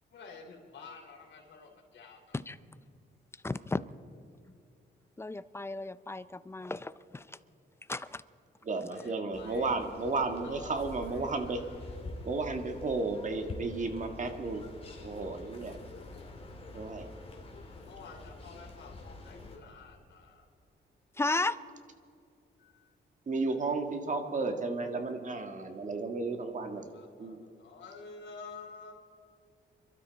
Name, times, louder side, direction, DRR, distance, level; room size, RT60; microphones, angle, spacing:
voice 1, 0.1-2.4 8.9-9.7 10.4-11.3 11.6-11.7 17.8-20.5 22.6-22.9 26.7-28.9, left 4 dB, 70° left, 1 dB, 3.3 m, -50 dB
voice 2, 3.4-3.8 5.2-7.4 7.9-8.2 21.1-21.6, left 2 dB, 15° left, 14 dB, 0.5 m, -34 dB
voice 3, 8.6-11.6 12.2-14.6 15.0-15.8 16.7-17.1 23.3-26.8 27.2-27.4, right 3 dB, 40° right, 6 dB, 1.7 m, -33 dB
sound 1, 9.3-19.6, left 2 dB, 30° left, 2.6 m, -46 dB
28.0 x 12.5 x 4.0 m, 2.5 s
cardioid pair, 110°, 19 cm